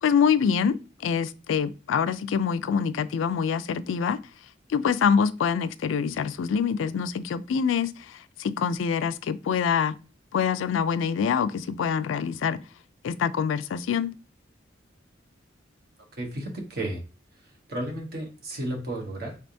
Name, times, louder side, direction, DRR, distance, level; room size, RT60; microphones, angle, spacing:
voice 1, 0.0-4.2 4.7-10.0 10.3-12.6 13.0-14.1, left 7 dB, 80° left, 0.3 m, -25 dB
voice 2, 16.2-17.0 17.4-19.4, right 1 dB, 55° right, 1.0 m, -33 dB
3.4 x 3.3 x 2.6 m
head